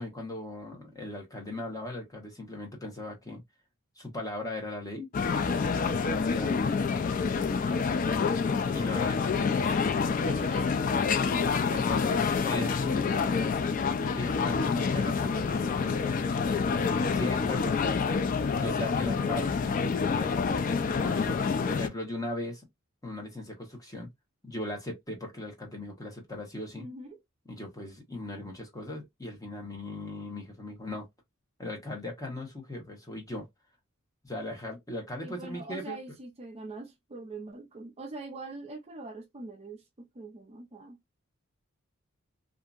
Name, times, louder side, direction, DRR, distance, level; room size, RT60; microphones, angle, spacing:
voice 1, 0.0-3.4 4.0-5.1 5.7-7.6 8.7-9.8 11.7-16.4 17.1-22.6 23.0-24.1 24.4-26.9 27.5-31.1 31.6-33.5 34.2-36.0, left 2 dB, 15° left, 1.0 m, -38 dB
sound 1, 5.1-21.9, left 5 dB, 40° left, 0.3 m, -27 dB
voice 2, 8.5-11.5 17.1-18.1 26.8-27.2 35.2-41.0, right 3 dB, 30° right, 0.4 m, -44 dB
2.7 x 2.5 x 2.4 m
head